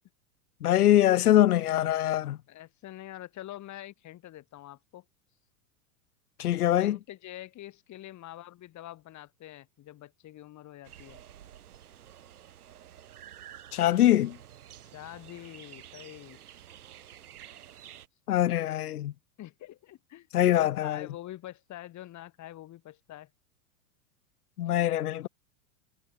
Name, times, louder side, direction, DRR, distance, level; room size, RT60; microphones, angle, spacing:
voice 1, 0.6-2.4 6.4-7.0 13.7-14.4 18.3-19.1 20.3-21.0 24.6-25.3, left 12 dB, 85° left, 1.4 m, -23 dB
voice 2, 2.5-5.0 6.8-11.2 14.9-16.4 19.4-23.3, left 14 dB, 40° left, 6.8 m, -45 dB
sound 1, 10.8-18.1, right 10 dB, 85° right, 7.6 m, -50 dB
hypercardioid pair, 110°, 44 cm